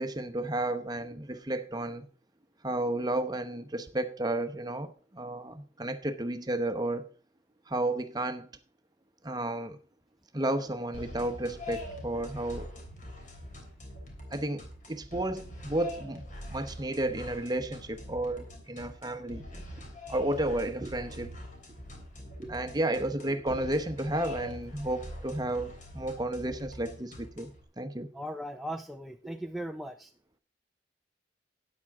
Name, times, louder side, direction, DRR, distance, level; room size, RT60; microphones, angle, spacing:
voice 1, 0.0-2.0 2.6-7.1 7.7-8.5 9.2-9.8 10.3-12.7 14.3-16.2 16.5-19.5 20.1-21.3 22.4-27.5 27.8-28.1, right 1 dB, 25° right, 0.9 m, -32 dB
sound 1, 10.9-27.6, left 1 dB, 45° left, 3.2 m, -44 dB
voice 2, 28.1-30.1, equal, ahead, 0.4 m, -38 dB
12.5 x 9.7 x 3.6 m
head